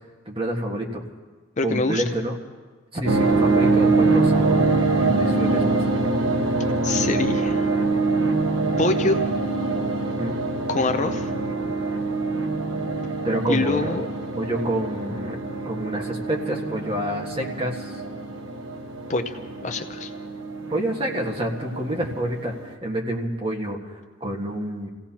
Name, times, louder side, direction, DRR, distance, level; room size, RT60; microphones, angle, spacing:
voice 1, 0.2-1.0 1.6-2.4 2.9-4.7 5.1-5.8 10.2-10.4 13.2-14.0 14.3-15.4 15.6-18.0 20.7-24.9, right 1 dB, 25° right, 0 dB, 1.6 m, -28 dB
voice 2, 1.6-2.0 6.8-7.7 8.8-9.2 10.7-11.3 13.5-14.1 19.1-20.1, left 3 dB, 35° left, 7 dB, 0.5 m, -25 dB
sound 1, 3.1-22.7, right 3 dB, 75° right, 1.2 m, -24 dB
29.0 x 16.5 x 2.9 m, 1.4 s
head